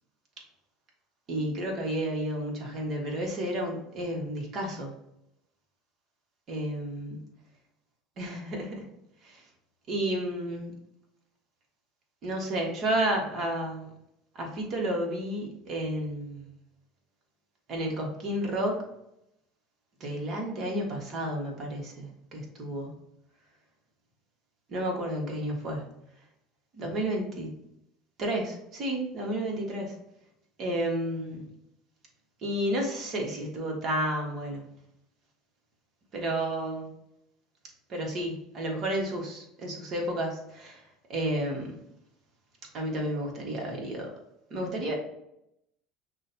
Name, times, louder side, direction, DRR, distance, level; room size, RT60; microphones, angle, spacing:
voice 1, 1.3-4.9 6.5-7.2 8.2-8.8 9.2-9.4 9.9-10.7 12.2-13.8 14.3-16.4 17.7-18.8 20.0-22.9 24.7-25.8 26.7-27.5 28.2-29.9 30.6-31.4 32.4-34.6 36.1-36.9 37.9-40.8 41.1-41.8 42.7-44.1 44.5-44.9, right 1 dB, 45° right, 0 dB, 1.4 m, -31 dB
6.1 x 2.4 x 2.7 m, 0.81 s
supercardioid pair, 110°, 0 cm